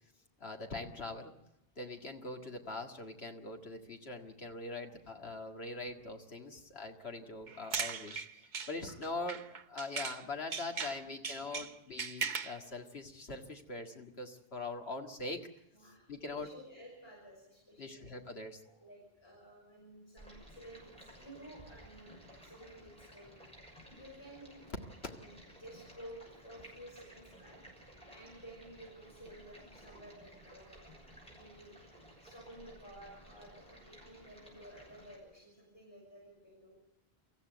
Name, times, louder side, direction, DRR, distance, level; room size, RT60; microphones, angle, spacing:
voice 1, 0.4-1.3 1.8-15.5 16.1-16.5 17.8-18.6 25.0-25.1, left 2 dB, 80° left, 3 dB, 2.2 m, -42 dB
sound 1, 7.5-10.2 10.5-12.6, right 5 dB, 50° right, 1.0 m, -39 dB
voice 2, 15.7-18.1 18.6-24.6 25.1-30.9 31.3-31.8 32.2-36.8, right 1 dB, 25° left, -3 dB, 6.3 m, -54 dB
Stream, 20.2-35.2, right 1 dB, 5° left, 6.5 m, -56 dB
25.0 x 14.5 x 8.0 m, 0.91 s
omnidirectional pair, 1.0 m